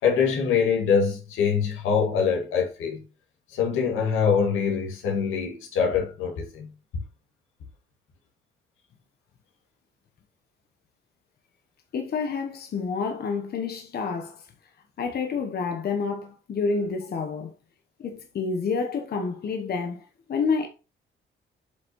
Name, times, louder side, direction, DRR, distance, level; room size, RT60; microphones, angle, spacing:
voice 1, 0.0-3.0 3.5-6.7 18.8-18.9, left 6 dB, 90° left, 2.4 m, -24 dB
voice 2, 11.9-14.5 15.0-17.5 18.0-20.7, left 5 dB, 55° left, 1.1 m, -29 dB
8.2 x 5.4 x 3.1 m
cardioid pair, 90°, 20 cm